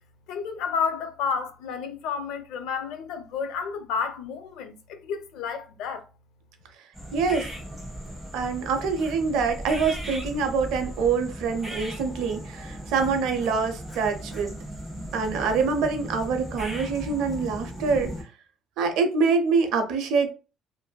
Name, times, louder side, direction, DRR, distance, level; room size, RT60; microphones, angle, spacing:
voice 1, 0.3-6.1, left 6 dB, 85° left, 0.5 m, -31 dB
sound 1, 6.9-18.2, equal, 5° right, 0.9 m, -37 dB
voice 2, 7.1-7.5 8.3-14.5 15.1-18.1 18.8-20.3, right 5 dB, 85° right, 0.5 m, -25 dB
2.5 x 2.5 x 2.2 m
cardioid pair, 160°, 0 cm